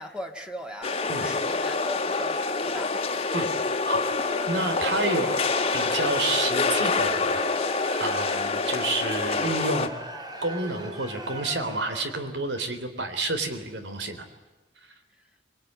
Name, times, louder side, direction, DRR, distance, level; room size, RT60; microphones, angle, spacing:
voice 1, 0.0-3.1, equal, 5° right, 4 dB, 2.0 m, -38 dB
sound 1, 0.8-9.9, left 4 dB, 35° left, 1.7 m, -26 dB
Crowd, 3.8-12.3, right 1 dB, 25° right, 2.7 m, -39 dB
voice 2, 4.5-5.4 5.7-7.5 8.0-9.9 10.4-14.3, right 2 dB, 80° right, 8 dB, 3.7 m, -29 dB
26.0 x 22.0 x 9.6 m, 1.1 s
head